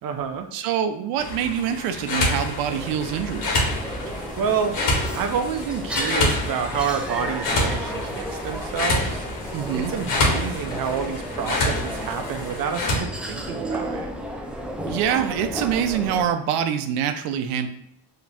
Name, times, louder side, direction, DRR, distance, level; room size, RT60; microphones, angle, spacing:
voice 1, 0.0-0.5 4.1-4.8 5.1-9.3 9.7-14.1, right 7 dB, 45° right, 7 dB, 0.6 m, -28 dB
voice 2, 0.5-3.6 9.5-9.9 14.9-17.7, right 8 dB, 90° right, 8 dB, 0.7 m, -25 dB
sound 1, 1.2-13.0, left 2 dB, 60° left, 1.5 m, -27 dB
sound 2, 2.7-16.3, right 1 dB, 5° right, 0.3 m, -33 dB
4.9 x 3.0 x 3.4 m, 0.74 s
cardioid pair, 115°, 49 cm